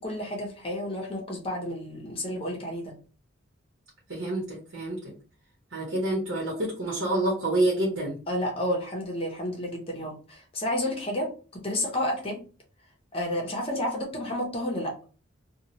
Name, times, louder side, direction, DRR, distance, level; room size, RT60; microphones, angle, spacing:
voice 1, 0.0-2.9 8.3-12.4 13.1-14.9, left 1 dB, 30° left, 0 dB, 0.7 m, -31 dB
voice 2, 4.1-5.1 5.7-8.2, right 1 dB, 75° right, -3 dB, 1.1 m, -27 dB
2.9 x 2.3 x 2.8 m, 0.37 s
head